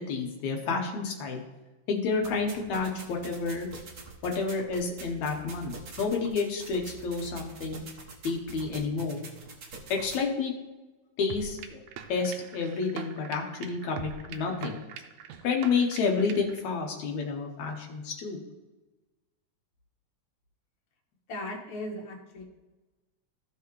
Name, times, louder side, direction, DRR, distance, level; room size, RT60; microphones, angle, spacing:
voice 1, 0.0-1.4 1.9-3.7 4.2-5.7 6.0-7.8 8.2-9.2 9.9-10.5 11.2-11.8 12.1-14.8 15.4-18.4, left 4 dB, 75° left, 1 dB, 2.3 m, -30 dB
sound 1, 2.2-10.2, right 3 dB, 60° right, 1.0 m, -45 dB
sound 2, 11.3-16.6, right 7 dB, 80° right, 2.0 m, -43 dB
voice 2, 21.3-22.4, left 1 dB, 50° left, -1 dB, 1.9 m, -37 dB
15.0 x 5.8 x 3.1 m, 1.1 s
omnidirectional pair, 3.3 m